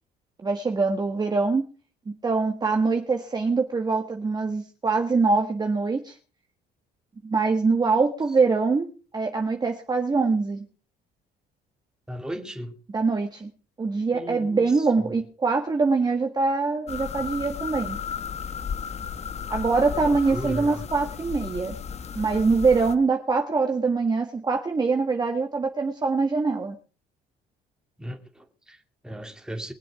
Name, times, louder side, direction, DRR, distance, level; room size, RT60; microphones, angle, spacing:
voice 1, 0.4-1.6 2.2-6.1 7.2-10.7 12.9-13.5 13.8-18.0 19.5-21.7 22.1-26.8, right 4 dB, 25° right, 1.6 m, -24 dB
voice 2, 12.1-12.8 14.1-15.1 19.9-20.8 28.0-29.7, equal, 5° right, 2.6 m, -36 dB
sound 1, 16.9-22.9, left 7 dB, 40° left, 1.1 m, -34 dB
23.0 x 7.7 x 4.8 m
cardioid pair, 110°, 17 cm